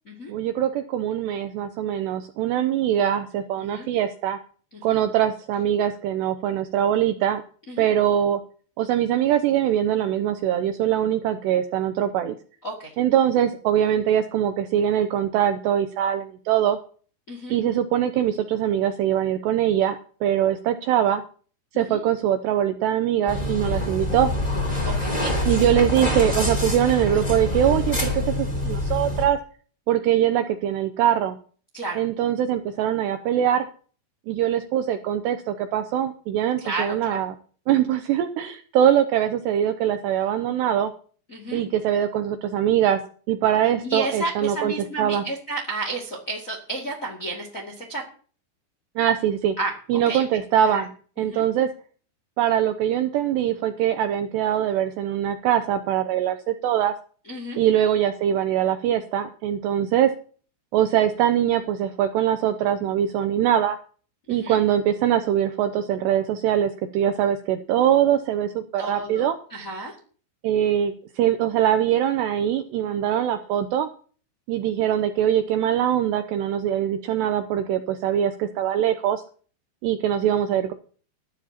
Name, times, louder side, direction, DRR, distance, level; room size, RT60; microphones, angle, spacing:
voice 1, 0.3-4.4 4.8-7.4 7.8-8.4 8.8-12.4 13.0-16.8 17.5-20.0 20.2-21.2 21.7-24.3 25.5-29.4 29.9-31.4 32.0-33.7 34.3-37.3 37.7-40.9 41.5-43.0 43.3-44.7 45.0-45.2 49.0-49.5 49.9-50.9 51.2-51.7 52.4-56.9 57.6-60.1 60.7-63.8 64.3-69.4 70.4-73.9 74.5-79.2 79.8-80.7, right 10 dB, 80° right, 8 dB, 2.5 m, -22 dB
sound 1, 23.3-29.2, left 1 dB, 10° left, 2.2 m, -25 dB
voice 2, 24.8-25.8 31.7-32.0 36.6-37.2 41.3-41.6 43.8-48.0 49.6-49.7 50.0-50.2 50.6-50.8 51.2-51.4 57.2-57.6 64.3-64.6 68.8-69.9, right 2 dB, 35° left, 0 dB, 1.2 m, -32 dB
20.0 x 12.0 x 2.9 m, 0.42 s
omnidirectional pair, 5.6 m